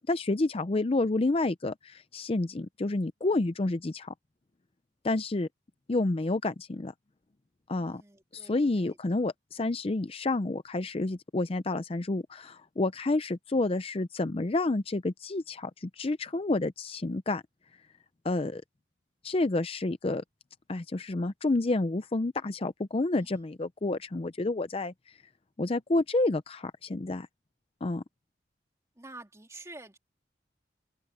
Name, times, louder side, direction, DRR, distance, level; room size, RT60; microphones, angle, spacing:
voice 1, 0.1-4.1 5.0-5.5 5.9-6.9 7.7-8.0 8.3-17.4 18.2-18.6 19.2-20.2 20.7-24.9 25.6-27.3 27.8-28.0, left 2 dB, 35° left, 0.5 m, -29 dB
voice 2, 7.8-9.2 29.0-30.0, right 2 dB, 15° right, 2.8 m, -49 dB
open air
head